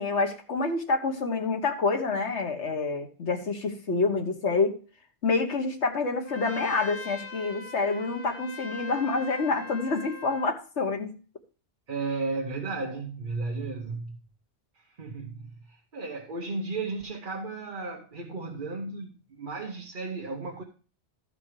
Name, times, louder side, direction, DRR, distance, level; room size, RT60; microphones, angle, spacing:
voice 1, 0.0-4.8 5.2-11.1, left 3 dB, 85° left, 1.7 m, -27 dB
Trumpet, 6.3-10.5, left 2 dB, 55° left, 1.1 m, -41 dB
voice 2, 11.9-14.2 14.7-20.6, right 3 dB, 50° right, 1.2 m, -34 dB
13.5 x 5.1 x 4.8 m
omnidirectional pair, 1.2 m